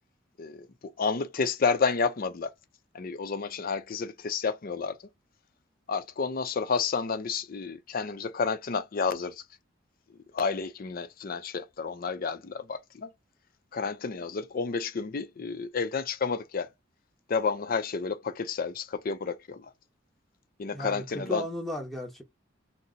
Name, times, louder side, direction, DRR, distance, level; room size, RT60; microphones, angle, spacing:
voice 1, 0.4-2.5 2.9-5.0 5.9-9.4 10.3-13.1 13.7-16.7 17.3-19.7 20.6-21.4, left 5 dB, 45° left, 0.5 m, -30 dB
voice 2, 20.7-22.2, left 1 dB, ahead, 0.9 m, -35 dB
2.7 x 2.0 x 3.7 m
head